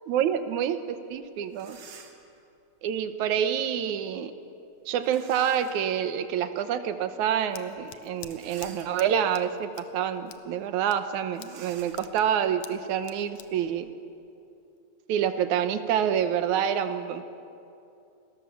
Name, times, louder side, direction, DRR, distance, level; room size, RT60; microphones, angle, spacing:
voice 1, 0.1-1.8 2.8-4.3 4.9-13.9 15.1-17.2, right 9 dB, 85° right, 10 dB, 2.5 m, -27 dB
pulling curtain, 1.1-1.2 1.5-2.4 5.0-5.9 6.4-6.5 8.2-9.3 9.9-10.1 10.3-10.5 11.3-13.8, right 6 dB, 60° right, 2.8 m, -51 dB
Scissors, 7.0-14.8, left 11 dB, 70° left, 2.1 m, -50 dB
29.0 x 20.0 x 7.2 m, 2.7 s
omnidirectional pair, 3.3 m